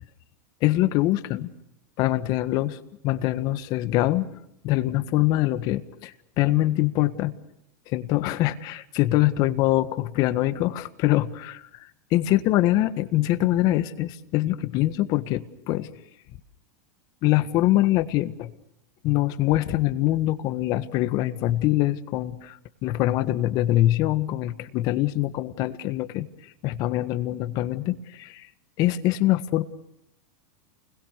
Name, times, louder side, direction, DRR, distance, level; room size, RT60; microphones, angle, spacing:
voice 1, 0.6-1.5 2.0-4.2 4.6-7.3 7.9-15.9 17.2-18.5 19.0-22.6 22.8-26.3 26.6-28.5 28.8-29.6, left 15 dB, 45° left, 11 dB, 1.6 m, -24 dB
29.5 x 21.5 x 6.8 m, 0.80 s
supercardioid pair, 135°, 9 cm